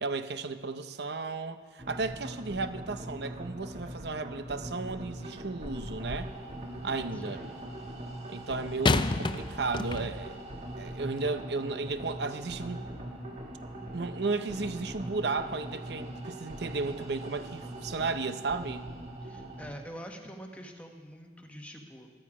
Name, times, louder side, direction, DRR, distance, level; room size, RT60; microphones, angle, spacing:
voice 1, 0.0-6.3 6.8-7.4 8.3-10.4 10.8-12.8 13.9-18.9, right 3 dB, 70° right, 10 dB, 0.8 m, -34 dB
sound 1, 1.8-19.7, right 1 dB, 40° right, 1.6 m, -41 dB
sound 2, 5.6-6.4 8.8-10.4 11.2-11.3, left 3 dB, 25° left, 0.4 m, -30 dB
voice 2, 7.1-7.6 19.2-22.1, equal, 10° left, 2 dB, 1.2 m, -45 dB
14.0 x 13.0 x 4.9 m, 1.5 s
head